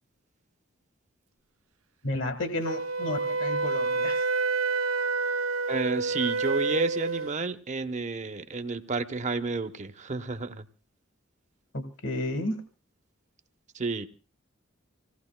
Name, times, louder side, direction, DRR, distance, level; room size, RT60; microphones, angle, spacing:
voice 1, 2.0-4.2 11.7-12.6, left 1 dB, 65° left, 7 dB, 1.5 m, -32 dB
Wind instrument woodwind instrument, 2.6-7.4, right 4 dB, 85° right, 0.7 m, -28 dB
voice 2, 5.7-10.6 13.7-14.1, right 3 dB, 35° right, 9 dB, 0.8 m, -31 dB
26.0 x 17.5 x 2.2 m, 0.36 s
head